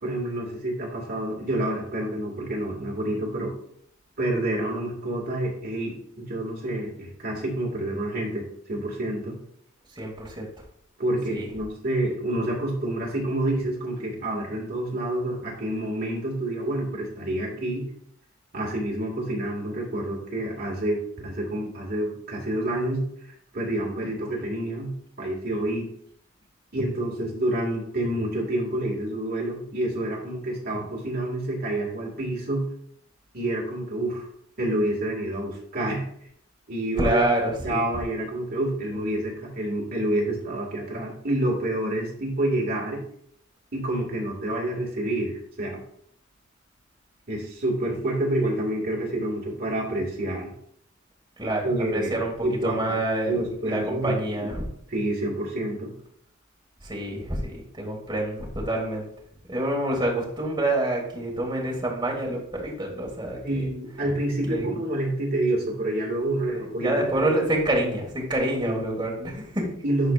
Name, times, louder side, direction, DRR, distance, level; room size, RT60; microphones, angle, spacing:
voice 1, 0.0-3.5 4.2-9.4 11.0-17.9 18.5-23.0 23.5-24.9 25.2-25.9 26.7-32.7 33.3-34.2 34.6-36.0 36.7-37.2 37.6-43.0 43.7-45.8 47.3-50.5 51.6-52.2 52.4-53.0 53.3-54.5 54.9-55.9 63.4-67.3 68.6-68.8 69.8-70.1, right 1 dB, 50° right, -2 dB, 1.9 m, -28 dB
voice 2, 9.9-10.5 11.3-11.5 37.0-37.8 38.9-39.0 51.4-52.3 52.6-54.6 56.8-59.1 59.5-63.7 64.4-64.6 66.5-69.7, right 1 dB, 20° right, -1 dB, 1.7 m, -27 dB
11.0 x 4.3 x 2.4 m, 0.68 s
head